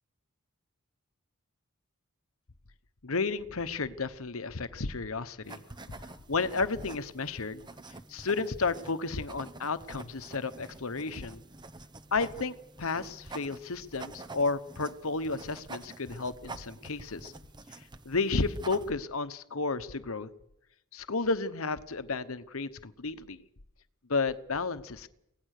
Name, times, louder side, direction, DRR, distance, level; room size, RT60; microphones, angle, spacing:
voice 1, 3.0-5.6 6.0-7.7 8.1-11.4 12.1-17.3 18.0-20.3 20.9-23.4 24.1-25.1, left 4 dB, 75° left, 12 dB, 1.1 m, -32 dB
sound 1, 5.4-18.9, right 3 dB, 20° right, 0.9 m, -48 dB
24.5 x 17.5 x 6.6 m, 0.83 s
head